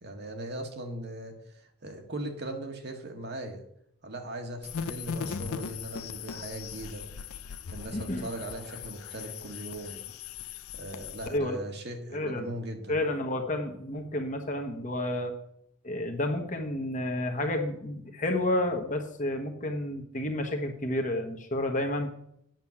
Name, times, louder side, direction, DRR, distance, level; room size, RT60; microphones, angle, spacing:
voice 1, 0.0-3.6 4.0-7.0 7.7-10.0 10.7-13.0, right 1 dB, 50° right, 4 dB, 1.5 m, -39 dB
sound 1, 4.6-11.4, left 6 dB, 80° left, 0.5 m, -39 dB
voice 2, 7.9-8.3 11.3-11.6 12.1-12.5 12.9-15.3 15.8-22.1, left 1 dB, 35° left, 4 dB, 1.2 m, -30 dB
9.1 x 6.3 x 7.2 m, 0.72 s
head